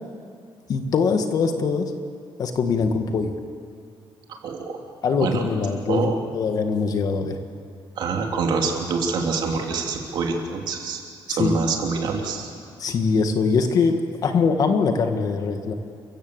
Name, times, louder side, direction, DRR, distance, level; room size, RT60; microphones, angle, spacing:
voice 1, 0.7-1.8 2.4-3.3 5.0-7.4 11.3-11.5 12.8-15.7, left 5 dB, 45° left, 6 dB, 1.7 m, -22 dB
voice 2, 4.4-4.8 5.2-5.5 5.9-6.3 7.9-11.0 11.3-12.5, right 4 dB, 60° right, 1 dB, 3.2 m, -26 dB
29.0 x 15.5 x 8.1 m, 2.3 s
cardioid pair, 170°, 9 cm